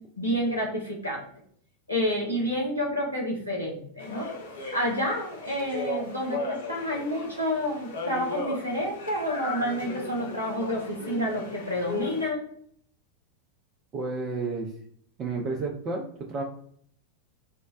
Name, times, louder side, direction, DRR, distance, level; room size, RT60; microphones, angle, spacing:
voice 1, 0.2-1.3 1.9-4.3 4.7-12.5, equal, 85° left, -3 dB, 0.9 m, -29 dB
sound 1, 4.0-12.3, left 2 dB, 65° left, 0.6 m, -37 dB
voice 2, 13.9-14.7 15.2-16.4, right 3 dB, 30° right, 0 dB, 0.5 m, -31 dB
4.2 x 2.1 x 2.4 m, 0.63 s
figure-of-eight pair, 90°, 0 cm